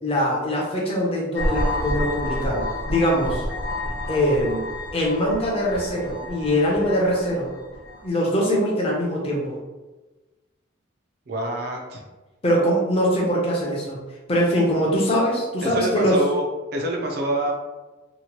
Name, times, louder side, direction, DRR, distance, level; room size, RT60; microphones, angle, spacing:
voice 1, 0.0-3.5 4.1-4.6 4.9-7.5 8.0-9.5 12.4-14.0 14.3-16.2, equal, 30° left, -3 dB, 0.6 m, -22 dB
sound 1, 1.3-8.1, left 1 dB, 65° left, 0.8 m, -29 dB
voice 2, 11.3-12.0 15.6-16.4 16.7-17.5, right 1 dB, 50° right, 1 dB, 0.4 m, -26 dB
2.8 x 2.1 x 2.9 m, 1.2 s
head